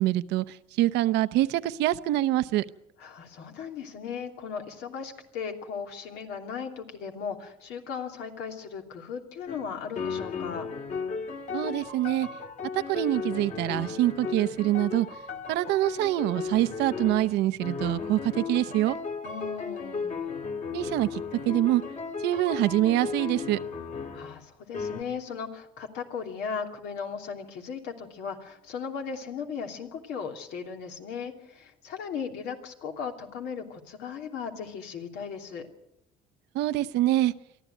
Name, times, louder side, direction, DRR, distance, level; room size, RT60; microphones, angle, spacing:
voice 1, 0.0-2.6 11.5-12.3 12.7-15.1 15.5-19.0 20.7-21.8 22.2-23.6 36.5-37.3, right 15 dB, 90° right, 13 dB, 0.8 m, -25 dB
voice 2, 3.0-10.7 19.2-20.2 24.1-35.7, left 6 dB, 85° left, 3 dB, 3.0 m, -37 dB
sound 1, 9.5-9.7 10.0-24.4 24.7-25.0, left 5 dB, 45° left, 2.5 m, -35 dB
23.5 x 14.0 x 9.1 m, 0.85 s
cardioid pair, 110°, 17 cm